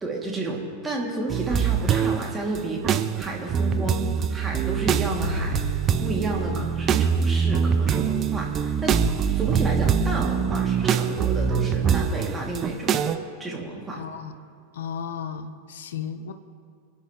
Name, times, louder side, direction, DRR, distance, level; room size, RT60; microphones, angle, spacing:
voice 1, 0.0-5.6 6.0-9.0 9.3-13.1 13.4-14.0, right 2 dB, 15° right, -2 dB, 2.7 m, -31 dB
sound 1, 1.3-2.2 2.5-13.2, right 7 dB, 30° right, 0.7 m, -24 dB
Explosion, 5.2-8.5, left 2 dB, 80° left, 0.4 m, -36 dB
voice 2, 13.9-14.3 14.7-16.3, left 7 dB, 60° left, 10 dB, 0.9 m, -34 dB
27.0 x 9.9 x 3.2 m, 2.2 s
figure-of-eight pair, 90°, 0 cm